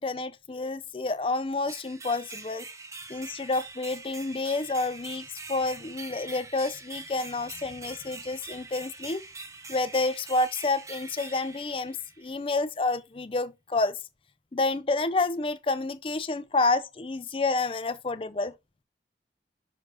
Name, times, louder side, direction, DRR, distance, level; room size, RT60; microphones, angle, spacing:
voice 1, 0.0-2.7 3.1-9.2 9.7-14.0 14.5-18.5, left 3 dB, 30° left, 0.4 m, -29 dB
sound 1, 1.7-12.4, right 3 dB, 20° right, 0.7 m, -43 dB
6.1 x 6.0 x 2.9 m
head